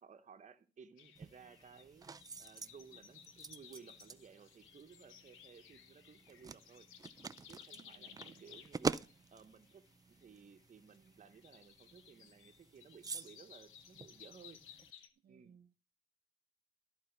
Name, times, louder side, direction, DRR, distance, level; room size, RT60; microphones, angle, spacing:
voice 1, 0.0-2.1 2.4-6.9 7.5-14.6 15.3-15.5, right 6 dB, 40° right, 1.1 m, -58 dB
sound 1, 1.0-15.1, left 9 dB, 90° left, 0.9 m, -59 dB
sound 2, 1.2-14.9, right 4 dB, 20° right, 0.4 m, -47 dB
voice 2, 7.7-8.7 15.2-15.8, right 8 dB, 55° right, 0.8 m, -65 dB
13.0 x 4.3 x 5.9 m
cardioid pair, 90°, 20 cm